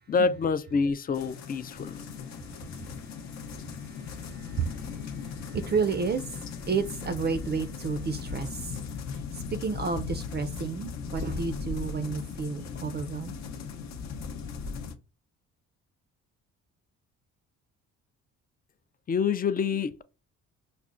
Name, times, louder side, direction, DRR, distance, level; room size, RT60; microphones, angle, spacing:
voice 1, 0.1-2.0 19.1-20.0, left 5 dB, 30° left, 0.4 m, -27 dB
sound 1, 1.1-15.0, left 6 dB, 65° left, 0.7 m, -38 dB
voice 2, 2.2-8.8 9.1-13.3, right 5 dB, 35° right, 0.4 m, -32 dB
5.8 x 2.1 x 2.4 m
cardioid pair, 90°, 30 cm